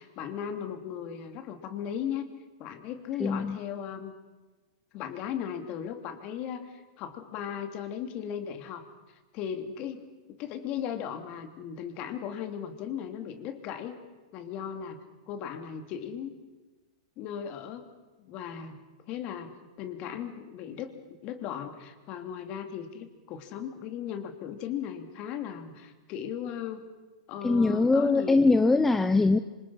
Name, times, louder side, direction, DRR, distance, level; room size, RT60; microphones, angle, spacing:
voice 1, 0.0-2.3 2.6-4.1 4.9-8.9 9.3-10.0 10.3-14.0 14.3-16.3 17.2-17.9 18.2-18.8 19.1-20.9 21.2-26.9 27.3-28.7, left 9 dB, 35° left, 7 dB, 3.0 m, -37 dB
voice 2, 3.2-3.6 27.4-29.4, left 3 dB, 5° left, 9 dB, 0.7 m, -22 dB
26.5 x 26.5 x 5.7 m, 1.2 s
hypercardioid pair, 140°, 3 cm